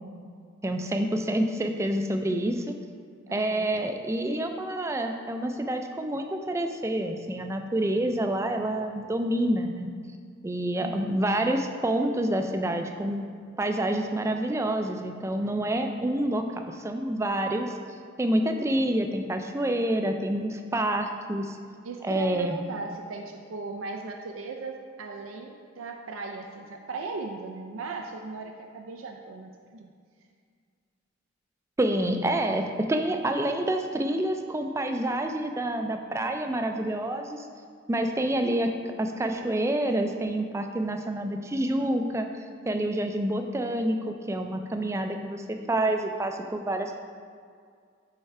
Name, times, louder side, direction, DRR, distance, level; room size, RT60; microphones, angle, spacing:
voice 1, 0.6-2.7 3.3-9.9 10.4-13.2 13.6-17.7 18.2-21.6 22.0-22.6 31.8-37.5 37.9-38.7 39.0-42.3 42.7-47.0, right 1 dB, 15° right, 5 dB, 0.3 m, -28 dB
voice 2, 3.3-3.7 10.8-11.1 21.8-29.9, right 3 dB, 90° right, 2 dB, 0.4 m, -37 dB
5.5 x 4.4 x 4.7 m, 2.1 s
head